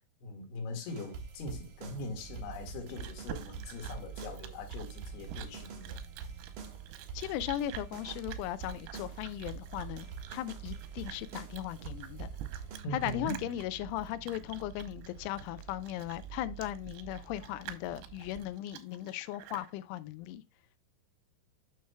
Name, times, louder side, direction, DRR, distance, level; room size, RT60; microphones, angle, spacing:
voice 1, 0.2-6.0 12.8-13.5, left 2 dB, 60° left, 3.5 m, -41 dB
sound 1, 0.9-12.8, right 5 dB, 60° right, 2.4 m, -45 dB
sound 2, 1.8-18.4, right 9 dB, 15° right, 4.3 m, -49 dB
Chewing mastication, 2.5-19.7, right 12 dB, 90° right, 3.5 m, -48 dB
voice 2, 7.1-12.3 12.9-20.4, left 13 dB, 85° left, 2.8 m, -37 dB
9.6 x 6.3 x 2.2 m
omnidirectional pair, 6.0 m